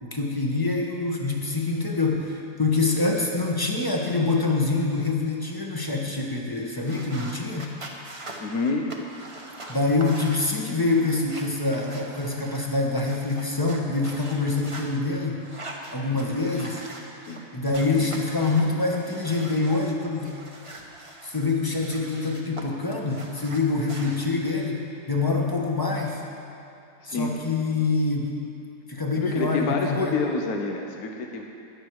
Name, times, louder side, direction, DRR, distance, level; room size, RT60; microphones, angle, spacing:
voice 1, 0.0-7.7 9.7-15.4 15.9-16.8 17.2-17.3 17.5-20.4 21.2-24.8 25.1-26.2 27.1-28.3 28.9-30.1, left 3 dB, 15° left, -1 dB, 1.2 m, -25 dB
sound 1, 6.7-14.9 15.4-17.4 17.7-19.8 20.2-22.6 22.9-24.2, right 2 dB, 25° right, 0.9 m, -42 dB
voice 2, 8.4-8.9 16.1-16.3 17.3-17.4 18.0-18.1 25.4-25.5 27.1-27.3 29.1-31.4, left 3 dB, 65° left, 2 dB, 1.3 m, -28 dB
14.5 x 11.0 x 4.7 m, 2.7 s
omnidirectional pair, 1.8 m